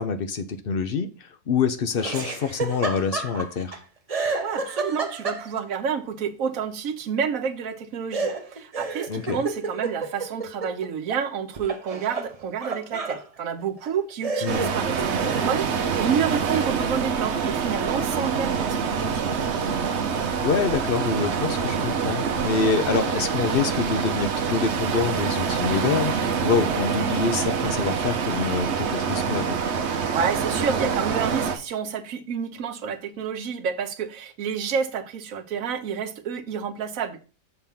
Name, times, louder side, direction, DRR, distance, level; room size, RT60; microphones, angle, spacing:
voice 1, 0.0-3.8 9.1-9.4 14.4-14.7 20.4-29.6, left 5 dB, 55° left, 0.7 m, -26 dB
Laughter, 2.0-3.8 4.1-5.8 8.1-11.2 11.6-13.2 13.8-13.9 14.2-15.6, right 4 dB, 35° right, 0.7 m, -30 dB
voice 2, 4.4-19.3 30.1-37.2, right 7 dB, 85° right, 1.2 m, -29 dB
sound 1, 14.5-31.6, right 6 dB, 60° right, 1.0 m, -26 dB
6.9 x 3.5 x 5.7 m
omnidirectional pair, 1.4 m